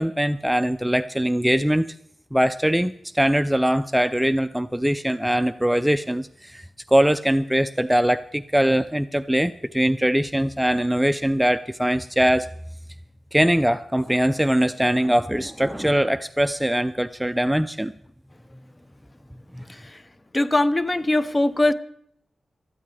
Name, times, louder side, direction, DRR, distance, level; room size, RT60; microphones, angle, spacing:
voice 1, 0.0-1.9 2.3-12.5 13.3-17.9 19.5-19.6, equal, 5° right, 12 dB, 0.4 m, -22 dB
voice 2, 20.3-21.7, left 2 dB, 25° left, 13 dB, 0.8 m, -20 dB
19.5 x 13.5 x 3.3 m, 0.72 s
cardioid pair, 75°, 0 cm